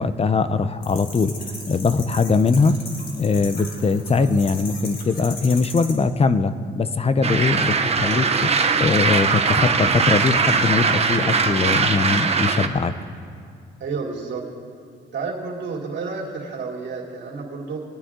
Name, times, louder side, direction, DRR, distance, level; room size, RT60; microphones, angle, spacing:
voice 1, 0.0-1.3 1.7-2.8 3.2-8.5 8.8-12.9, left 4 dB, 30° left, 13 dB, 0.7 m, -21 dB
sound 1, 0.8-5.9, left 3 dB, 50° left, 3.9 m, -37 dB
sound 2, 7.2-12.7, right 4 dB, 30° right, 1.0 m, -20 dB
voice 2, 13.8-14.5 15.1-17.8, right 4 dB, 65° right, -2 dB, 3.2 m, -30 dB
23.0 x 9.9 x 3.8 m, 2.3 s
cardioid pair, 90°, 20 cm